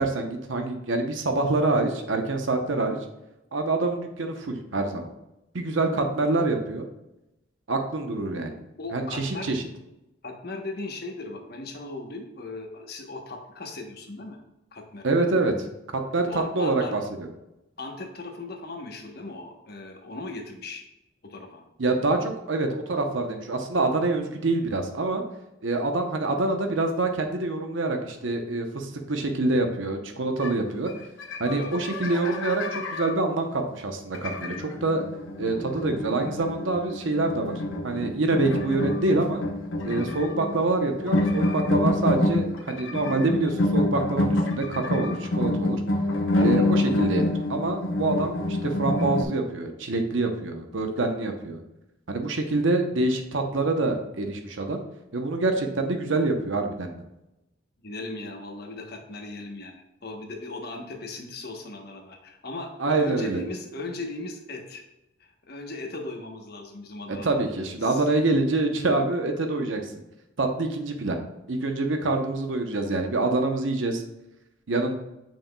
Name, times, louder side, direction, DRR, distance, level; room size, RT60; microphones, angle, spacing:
voice 1, 0.0-3.0 3.5-5.1 5.5-6.9 7.7-8.5 8.9-9.6 15.0-15.5 15.9-17.3 21.8-25.2 25.6-30.9 31.4-35.0 35.4-37.5 37.8-39.4 39.8-45.8 46.4-51.6 52.1-54.8 55.1-57.0 62.8-63.4 67.2-69.8 70.4-71.2 71.5-74.0 74.7-75.0, right 2 dB, 80° right, 5 dB, 0.8 m, -26 dB
voice 2, 8.8-9.5 10.2-14.4 14.7-15.2 16.3-17.0 17.8-20.8 21.2-21.6 31.6-31.8 46.5-46.7 57.8-62.7 63.0-64.8 65.2-67.4 67.8-68.0, left 2 dB, 55° left, 3 dB, 1.0 m, -38 dB
sound 1, 30.4-30.5 30.9-31.0 31.2-33.1 34.1-49.2, left 1 dB, 80° left, 0.8 m, -27 dB
7.3 x 5.9 x 2.3 m, 0.90 s
head